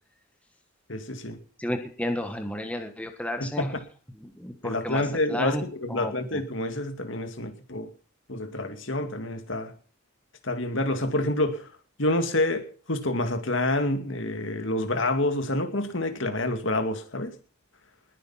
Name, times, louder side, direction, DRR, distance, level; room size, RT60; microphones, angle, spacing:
voice 1, 0.9-1.4 3.4-3.7 4.6-7.9 8.3-9.7 10.4-11.7 12.0-17.3, left 1 dB, 60° left, 7 dB, 2.4 m, -28 dB
voice 2, 1.6-3.8 4.1-6.4, left 1 dB, 5° left, 5 dB, 1.5 m, -33 dB
20.5 x 9.2 x 5.8 m, 0.42 s
head